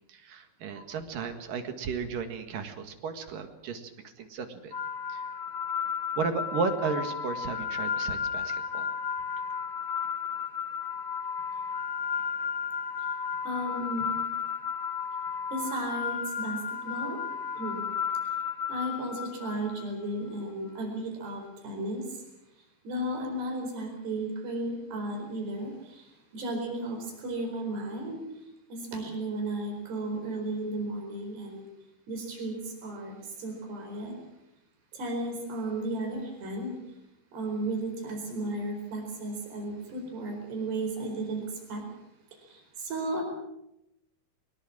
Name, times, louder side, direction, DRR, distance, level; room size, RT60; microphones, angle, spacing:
voice 1, 0.1-3.9 4.2-4.7 5.1-5.2 6.2-8.9, right 5 dB, 60° right, 7 dB, 3.2 m, -34 dB
sound 1, 4.7-19.8, left 7 dB, 50° left, 1.5 m, -33 dB
voice 2, 13.5-14.2 15.5-16.6 16.8-17.2 17.6-17.8 18.7-22.1 22.8-26.0 26.3-28.2 28.7-31.6 32.1-34.1 34.9-36.8 37.3-41.4 41.7-41.8 42.8-43.2, right 1 dB, 75° right, 3 dB, 6.6 m, -34 dB
23.0 x 21.0 x 7.4 m, 0.85 s
omnidirectional pair, 4.8 m